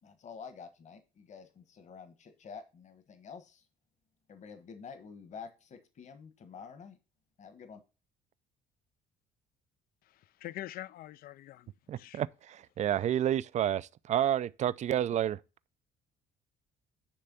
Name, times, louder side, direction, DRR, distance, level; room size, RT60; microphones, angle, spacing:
voice 1, 0.0-3.6 4.3-7.0 7.4-7.8, left 6 dB, 45° left, 1.4 m, -49 dB
voice 2, 10.0-11.7 12.0-12.2, left 14 dB, 60° left, 0.4 m, -44 dB
voice 3, 11.9-15.4, right 11 dB, 45° right, 0.4 m, -30 dB
10.0 x 3.4 x 6.8 m
cardioid pair, 110°, 17 cm